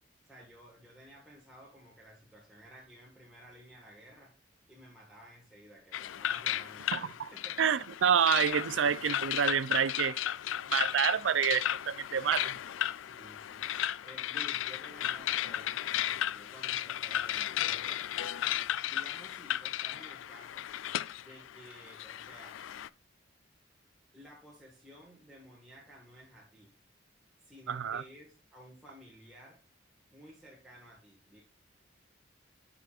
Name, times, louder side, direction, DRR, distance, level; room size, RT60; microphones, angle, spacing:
voice 1, 0.2-4.3 4.7-7.7 8.7-8.9 13.0-13.6 14.0-18.0 18.9-20.7 21.1-22.6 24.1-26.7 27.4-29.6 30.1-31.4, equal, ahead, 1.6 m, -54 dB
sound 1, 5.9-22.9, left 11 dB, 90° left, 0.3 m, -35 dB
voice 2, 7.6-10.2 10.7-12.6 27.7-28.0, right 8 dB, 80° right, 0.4 m, -28 dB
11.5 x 5.0 x 2.4 m
head